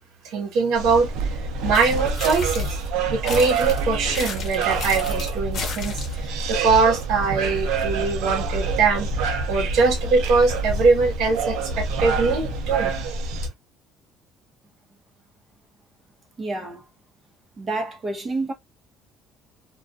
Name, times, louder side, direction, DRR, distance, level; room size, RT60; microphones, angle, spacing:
voice 1, 0.2-1.1 1.6-2.8 3.1-9.1 9.5-12.9, right 4 dB, 70° right, 0.9 m, -22 dB
sound 1, 0.7-13.5, right 3 dB, 90° right, 0.6 m, -27 dB
sound 2, 1.7-2.9 3.3-6.3, left 4 dB, 45° left, 0.9 m, -34 dB
voice 2, 16.4-16.8 17.6-18.5, right 2 dB, 25° right, 0.8 m, -28 dB
2.4 x 2.3 x 2.4 m
cardioid pair, 150°, 0 cm